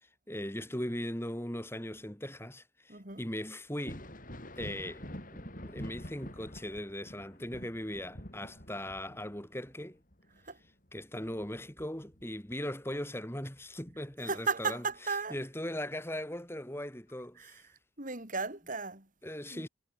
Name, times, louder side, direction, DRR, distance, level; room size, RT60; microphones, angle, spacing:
voice 1, 0.0-4.1 4.6-5.0 5.3-10.0 10.9-17.7 19.2-19.7, left 1 dB, 10° left, 3.5 m, -39 dB
voice 2, 2.9-3.2 10.5-10.6 14.2-15.4 17.4-17.5 18.0-19.1 19.5-19.7, right 4 dB, 40° right, 4.7 m, -35 dB
Thunder, 3.7-13.0 13.4-14.6 16.2-16.3 17.1-17.2, equal, 40° left, 8.0 m, -47 dB
head